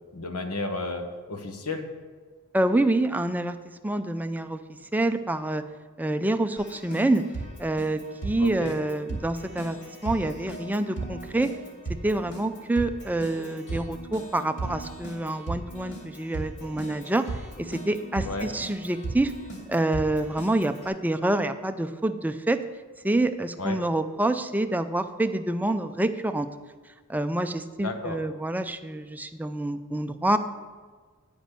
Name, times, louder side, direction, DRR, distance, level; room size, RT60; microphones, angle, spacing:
voice 1, 0.1-1.9 8.4-8.7 18.2-18.5 23.6-23.8 27.8-28.2, left 2 dB, 75° left, 5 dB, 1.1 m, -32 dB
voice 2, 2.5-3.6 3.8-4.6 4.9-5.6 6.0-7.3 7.6-9.8 10.0-11.5 12.0-17.3 17.6-19.3 19.7-22.6 23.0-26.5 27.1-30.4, right 1 dB, 5° right, 9 dB, 0.4 m, -27 dB
Keyboard (musical), 6.6-20.9, right 2 dB, 55° left, 2.3 m, -38 dB
9.8 x 5.1 x 6.7 m, 1.4 s
head